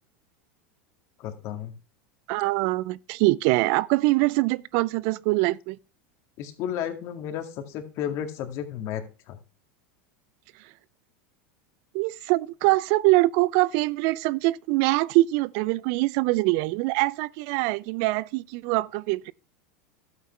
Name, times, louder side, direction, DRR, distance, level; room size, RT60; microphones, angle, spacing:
voice 1, 1.2-1.7 6.4-9.4, left 9 dB, 55° left, 2.1 m, -33 dB
voice 2, 2.3-5.8 11.9-19.3, right 20 dB, 60° right, 0.4 m, -23 dB
12.5 x 8.4 x 3.3 m
hypercardioid pair, 100°, 6 cm